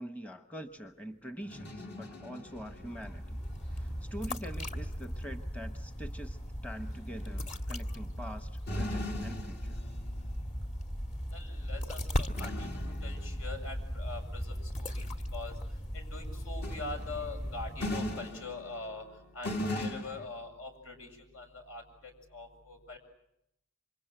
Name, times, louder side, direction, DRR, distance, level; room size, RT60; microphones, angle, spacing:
voice 1, 0.0-3.4 3.7-9.8, equal, 5° left, 8 dB, 1.0 m, -44 dB
sound 1, 1.4-3.5 3.9-4.2 6.8-7.3 7.8-7.9 8.7-10.7 12.3-13.8 16.6-19.1 19.4-20.3, left 1 dB, 55° left, 2.7 m, -40 dB
sound 2, 2.5-18.4, equal, 35° left, 1.9 m, -38 dB
voice 2, 11.3-15.5 15.9-19.0 19.3-23.0, left 3 dB, 75° left, 4 dB, 7.6 m, -43 dB
28.5 x 26.0 x 7.8 m, 0.81 s
head